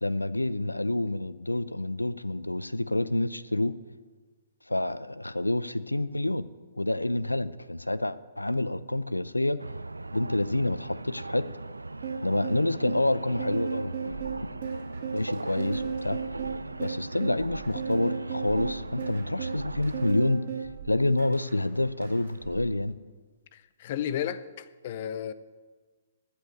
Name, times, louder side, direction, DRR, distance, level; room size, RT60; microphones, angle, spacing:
voice 1, 0.0-3.7 4.7-6.5 6.8-9.6 10.1-11.5 12.2-14.2 15.1-16.2 16.8-20.4 20.8-22.9, left 1 dB, 90° left, 0.5 m, -28 dB
sound 1, 9.6-20.1, right 2 dB, 85° right, 0.3 m, -39 dB
sound 2, 12.0-20.7, right 6 dB, 50° right, 1.5 m, -35 dB
sound 3, 14.1-18.1 18.5-22.8, right 8 dB, 65° right, 2.6 m, -47 dB
voice 2, 23.5-25.3, left 10 dB, 45° left, 0.6 m, -33 dB
14.0 x 5.7 x 8.0 m
figure-of-eight pair, 120°, 0 cm